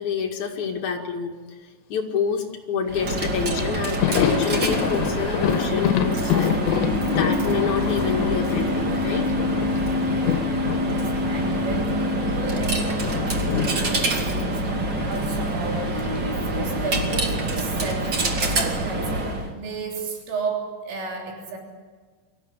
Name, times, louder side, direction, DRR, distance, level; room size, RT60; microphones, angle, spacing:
voice 1, 0.0-9.3, left 6 dB, 50° left, 2 dB, 2.6 m, -28 dB
Coin (dropping), 2.9-19.5, right 1 dB, 40° right, 1.6 m, -25 dB
Thunder, 3.6-12.4 12.7-17.0 17.2-17.4 18.6-19.3, left 10 dB, 70° left, 3.1 m, -28 dB
voice 2, 10.1-10.6 10.9-14.7 15.1-21.6, right 4 dB, 75° right, 1 dB, 5.8 m, -34 dB
24.5 x 15.0 x 9.9 m, 1.5 s
omnidirectional pair, 5.8 m